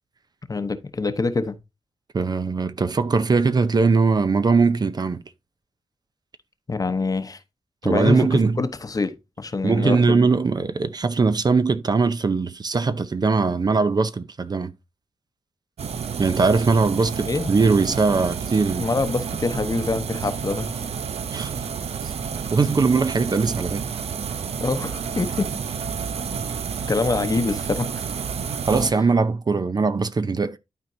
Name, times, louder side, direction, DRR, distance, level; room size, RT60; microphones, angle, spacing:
voice 1, 0.5-1.6 6.7-7.4 7.8-8.3 8.6-10.3 17.3-17.5 18.8-20.7 24.6-25.5 26.9-28.1, left 3 dB, 35° left, 0.9 m, -25 dB
voice 2, 2.1-5.2 7.8-8.6 9.6-14.7 16.2-18.9 21.3-21.6 22.0-22.1 22.5-23.8 28.7-30.6, right 4 dB, 40° right, 0.6 m, -20 dB
sound 1, 15.8-28.9, right 6 dB, 80° right, 0.7 m, -30 dB
12.0 x 4.4 x 2.7 m
wide cardioid pair, 85°, 11 cm